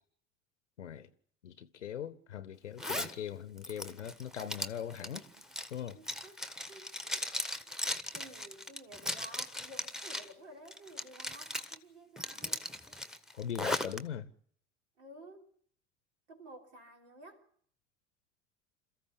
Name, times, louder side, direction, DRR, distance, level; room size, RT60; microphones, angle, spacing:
voice 1, 1.4-5.2 5.7-6.0 13.4-14.3, left 9 dB, 75° left, 0.9 m, -40 dB
Zipper (clothing), 2.8-3.1 3.6-10.3 10.7-11.8 12.2-14.0, left 1 dB, ahead, 1.4 m, -38 dB
voice 2, 4.9-5.4 5.9-7.8 8.1-12.7 15.0-15.5 16.3-17.5, right 1 dB, 70° right, 3.7 m, -53 dB
27.5 x 14.5 x 8.5 m
figure-of-eight pair, 65°, 36 cm